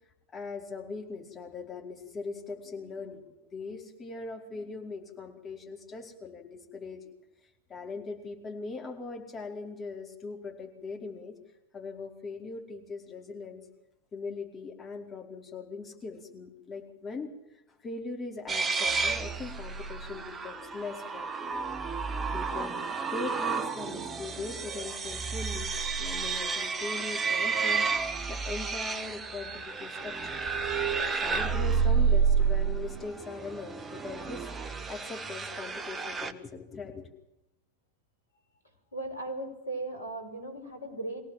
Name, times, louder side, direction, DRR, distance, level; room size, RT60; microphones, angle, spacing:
voice 1, 0.3-7.1 7.7-11.3 11.7-13.6 14.1-21.7 22.3-30.4 31.2-34.5 34.9-37.1, left 4 dB, 20° left, 0 dB, 4.9 m, -40 dB
sound 1, 18.5-36.3, right 5 dB, 15° right, 1.4 m, -30 dB
voice 2, 38.9-41.2, right 2 dB, 80° left, 5 dB, 5.5 m, -37 dB
24.0 x 17.5 x 7.7 m, 0.92 s
figure-of-eight pair, 90°, 0 cm